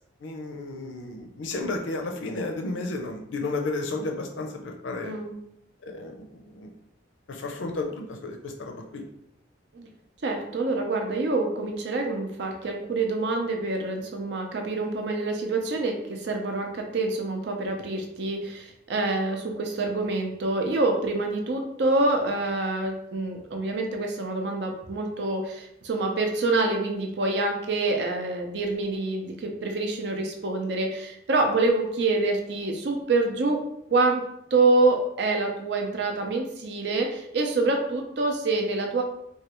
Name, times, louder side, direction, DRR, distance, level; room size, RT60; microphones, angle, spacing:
voice 1, 0.2-5.1 5.8-6.7 7.3-9.0, left 2 dB, 85° left, 3 dB, 0.5 m, -33 dB
voice 2, 5.0-5.4 9.7-9.9 10.2-34.2 34.5-39.0, right 2 dB, 65° right, 3 dB, 0.5 m, -26 dB
3.2 x 2.3 x 2.9 m, 0.77 s
head